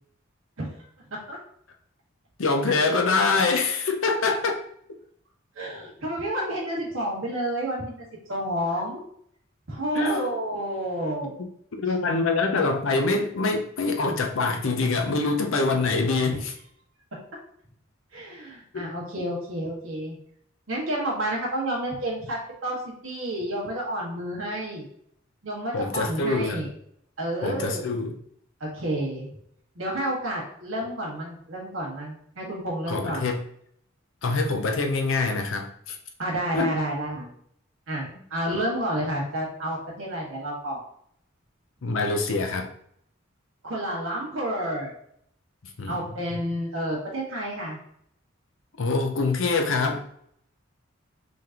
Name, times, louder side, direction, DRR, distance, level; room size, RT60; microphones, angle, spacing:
voice 1, 2.4-4.6 9.9-10.2 11.8-16.5 18.7-18.9 25.7-26.7 27.4-28.1 32.9-33.4 34.2-36.0 36.5-36.7 41.8-42.7 45.8-46.0 48.8-50.0, left 3 dB, 70° left, 4 dB, 0.6 m, -25 dB
voice 2, 5.5-9.0 9.7-11.3 18.1-20.2 20.7-24.8 25.4-26.7 27.2-27.8 28.6-29.3 29.7-33.2 36.2-37.3 37.9-40.8 43.6-44.9 45.9-47.8, right 1 dB, 80° right, -4 dB, 1.6 m, -30 dB
3.9 x 3.3 x 2.8 m, 0.68 s
head